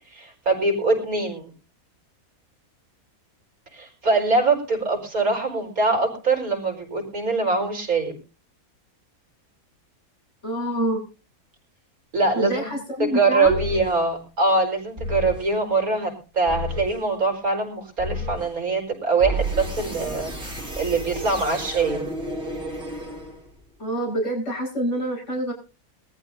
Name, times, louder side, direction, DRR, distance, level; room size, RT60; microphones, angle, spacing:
voice 1, 0.1-1.5 3.7-8.1 12.1-12.7 13.0-22.0, right 3 dB, 80° right, 2 dB, 5.2 m, -23 dB
voice 2, 10.4-11.0 12.3-13.6 23.8-25.5, right 1 dB, 55° left, 0 dB, 8.1 m, -26 dB
sound 1, 13.4-14.0 15.0-15.5 16.5-17.0 18.0-18.5 19.2-23.6, equal, 40° right, 7.9 m, -31 dB
22.5 x 14.0 x 2.7 m, 0.34 s
omnidirectional pair, 1.5 m